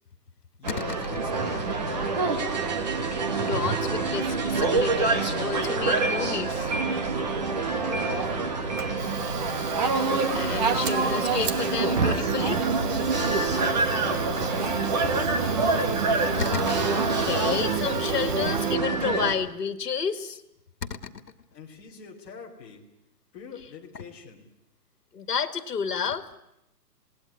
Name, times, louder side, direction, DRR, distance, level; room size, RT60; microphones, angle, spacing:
voice 1, 0.6-2.5 7.9-9.2 13.6-15.8 21.5-22.8 23.3-24.4, left 6 dB, 15° left, -3 dB, 3.1 m, -43 dB
sound 1, 0.6-19.3, right 4 dB, 25° right, 1.6 m, -26 dB
voice 2, 3.1-6.8 10.3-12.6 16.4-20.4 20.8-21.2 23.9-24.0 25.1-26.3, left 6 dB, 70° left, 10 dB, 2.3 m, -31 dB
Fire, 4.5-18.8, right 5 dB, 70° right, 2.1 m, -35 dB
27.5 x 19.0 x 9.9 m, 0.88 s
hypercardioid pair, 175°, 49 cm